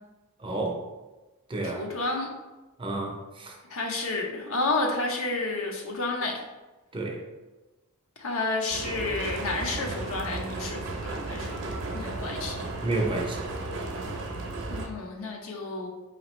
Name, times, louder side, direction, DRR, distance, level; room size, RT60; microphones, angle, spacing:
voice 1, 0.4-0.8 1.5-1.8 2.8-3.5 6.9-7.2 12.8-13.4, right 2 dB, 25° right, 1 dB, 0.5 m, -30 dB
voice 2, 1.6-2.3 3.7-6.4 8.2-11.6 11.9-12.6 14.7-15.9, left 3 dB, 65° left, 0 dB, 0.7 m, -30 dB
sound 1, 8.7-14.9, right 2 dB, 60° right, 0.7 m, -34 dB
4.9 x 2.9 x 3.0 m, 1.1 s
head